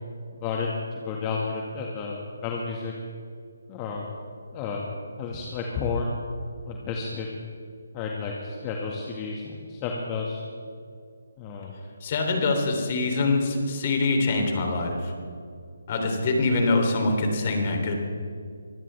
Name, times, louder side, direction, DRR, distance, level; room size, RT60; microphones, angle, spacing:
voice 1, 1.0-2.9 3.7-4.0 4.5-4.8 5.2-6.2 6.6-7.3 7.9-10.4 11.4-11.8, left 4 dB, 25° left, -1 dB, 1.7 m, -31 dB
voice 2, 12.0-15.1 15.9-17.9, left 3 dB, 40° left, 3 dB, 3.2 m, -24 dB
24.0 x 17.0 x 3.4 m, 2.2 s
figure-of-eight pair, 150°, 0 cm